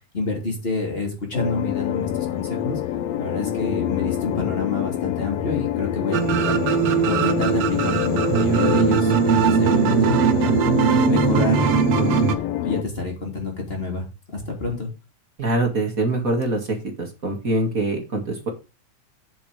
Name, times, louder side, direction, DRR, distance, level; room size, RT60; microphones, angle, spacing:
voice 1, 0.1-2.8 3.2-6.6 7.0-10.6 11.0-11.7 11.9-12.3 12.6-14.0 14.3-14.9, left 3 dB, 20° left, 1 dB, 2.9 m, -28 dB
sound 1, 1.3-12.8, left 12 dB, 75° left, 1.6 m, -26 dB
sound 2, 6.1-12.3, right 8 dB, 65° right, 1.8 m, -20 dB
voice 2, 15.4-18.5, right 2 dB, 30° right, 3 dB, 2.0 m, -24 dB
8.3 x 7.5 x 5.0 m, 0.29 s
omnidirectional pair, 3.5 m